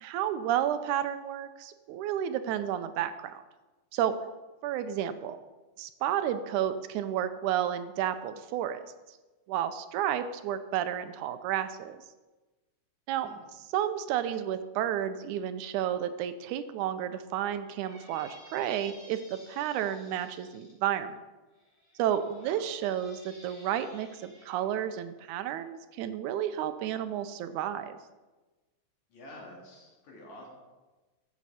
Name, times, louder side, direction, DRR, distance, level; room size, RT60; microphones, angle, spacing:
voice 1, 0.0-3.4 3.9-4.1 4.6-5.4 5.8-8.8 9.5-12.0 13.1-13.3 13.7-19.2 19.5-21.2 22.0-28.0, right 10 dB, 85° right, 11 dB, 2.1 m, -31 dB
Squeak, 17.6-20.7 21.5-24.6, left 1 dB, 15° left, 3.7 m, -55 dB
voice 2, 22.4-22.7 29.1-30.5, left 1 dB, 70° left, -2 dB, 3.6 m, -48 dB
12.5 x 8.1 x 4.2 m, 1.2 s
omnidirectional pair, 3.4 m